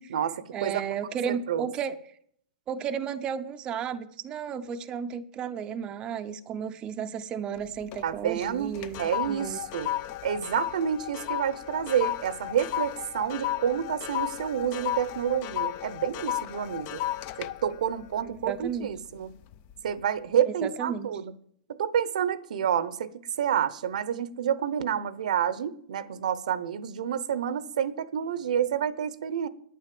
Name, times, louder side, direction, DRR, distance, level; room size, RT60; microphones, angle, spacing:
voice 1, 0.0-0.8 1.3-1.7 8.0-9.9 10.2-17.0 17.4-19.3 19.8-21.3 21.7-23.1 23.4-29.5, right 9 dB, 75° right, 0.8 m, -29 dB
voice 2, 0.5-1.9 2.7-9.6 18.3-18.9 20.6-21.1, right 7 dB, 20° right, 0.6 m, -33 dB
sound 1, 7.6-8.1 8.4-19.0 19.4-19.7, left 13 dB, 35° left, 0.5 m, -34 dB
9.8 x 9.4 x 7.6 m
hypercardioid pair, 150°, 4 cm